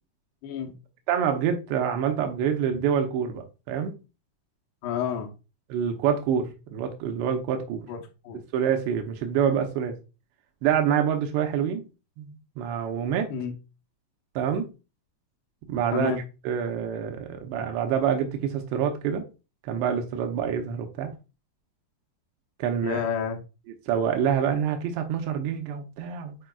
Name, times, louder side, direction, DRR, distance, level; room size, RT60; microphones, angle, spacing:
voice 1, 0.4-0.7 4.8-5.3 7.9-8.0 8.2-8.4 13.3-13.5 15.9-16.2 22.8-23.4, left 7 dB, 75° left, 2.6 m, -29 dB
voice 2, 1.1-3.9 5.7-7.9 8.5-10.0 10.6-11.9 12.2-13.3 14.4-14.7 15.7-16.1 16.4-19.2 19.6-21.1 22.6-23.0 23.9-26.4, right 8 dB, 80° right, 2.5 m, -26 dB
8.9 x 4.5 x 2.3 m
omnidirectional pair, 5.7 m